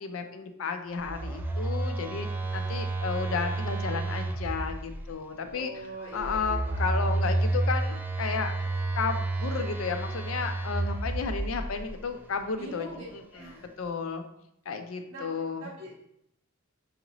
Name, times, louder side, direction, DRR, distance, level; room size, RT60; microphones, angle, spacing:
voice 1, 0.0-2.3 2.5-5.7 6.1-8.7 9.0-13.5 13.8-14.2 14.7-15.7, left 5 dB, 85° left, 7 dB, 0.5 m, -33 dB
Telephone, 1.0-5.0 6.2-11.9, right 2 dB, 10° right, 0.3 m, -30 dB
voice 2, 5.5-7.2 12.5-13.0 13.3-13.6 15.1-15.3 15.6-15.9, right 2 dB, 70° right, -10 dB, 1.4 m, -42 dB
5.7 x 2.6 x 3.0 m, 0.77 s
head